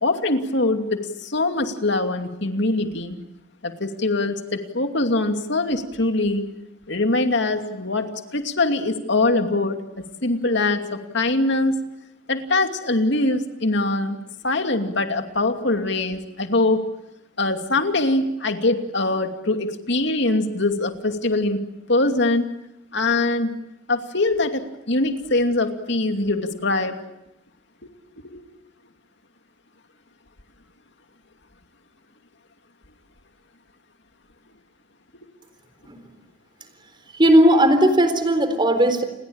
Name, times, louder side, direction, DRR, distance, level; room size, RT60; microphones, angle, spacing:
voice 1, 0.0-3.2 3.6-6.4 6.9-11.8 12.3-14.2 14.4-16.8 17.4-21.6 21.9-22.5 22.9-23.5 23.9-27.0 28.3-28.4, left 2 dB, 60° left, 6 dB, 2.6 m, -23 dB
voice 2, 37.1-39.0, right 1 dB, 25° right, 9 dB, 3.8 m, -16 dB
29.5 x 21.5 x 8.8 m, 0.88 s
head